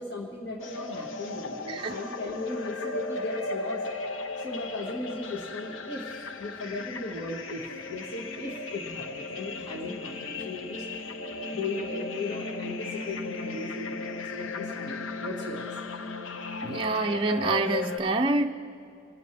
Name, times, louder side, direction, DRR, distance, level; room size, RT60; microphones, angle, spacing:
voice 1, 0.0-3.8 4.4-10.8 11.5-15.7, left 2 dB, 60° left, -2 dB, 1.8 m, -37 dB
sound 1, 0.6-18.0, left 3 dB, 80° left, 0.7 m, -36 dB
voice 2, 16.6-18.5, right 2 dB, 25° right, 2 dB, 0.4 m, -26 dB
28.0 x 14.0 x 3.4 m, 2.7 s
head